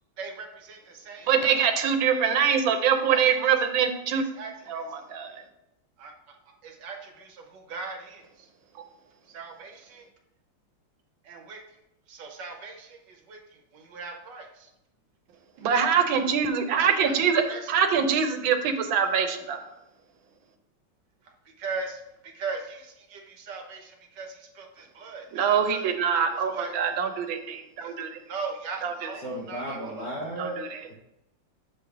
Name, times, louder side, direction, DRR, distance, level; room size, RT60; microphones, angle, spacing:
voice 1, 0.2-1.7 3.1-3.2 4.4-4.8 6.0-6.1 6.6-8.2 9.3-10.1 11.3-11.6 12.1-13.4 13.7-14.7 16.8-17.1 17.5-17.6 21.6-25.9 26.5-26.7 27.8-28.0 28.3-30.1, right 4 dB, 65° right, 3 dB, 1.7 m, -39 dB
voice 2, 1.3-4.2 4.7-5.4 15.6-19.6 25.3-28.2 28.8-29.1 30.4-30.8, right 7 dB, 90° right, 6 dB, 1.6 m, -24 dB
voice 3, 29.2-30.6 30.9-31.0, right 1 dB, 70° left, -8 dB, 2.2 m, -34 dB
7.4 x 3.4 x 5.8 m, 0.85 s
omnidirectional pair, 2.1 m